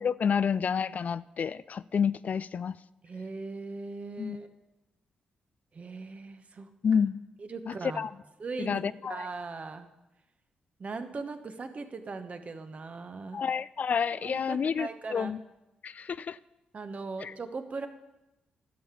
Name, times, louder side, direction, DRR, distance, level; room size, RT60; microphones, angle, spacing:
voice 1, 0.0-2.8 4.2-4.4 6.8-7.2 7.7-8.1 8.6-9.2 13.3-15.4 15.8-16.4 17.2-17.3, left 6 dB, 55° left, 17 dB, 0.3 m, -29 dB
voice 2, 3.0-4.5 5.7-6.7 7.4-8.1 8.4-9.9 10.8-13.4 14.2-15.3 16.7-17.9, right 4 dB, 45° right, 8 dB, 1.1 m, -39 dB
11.0 x 5.8 x 8.3 m, 0.99 s
supercardioid pair, 50°, 3 cm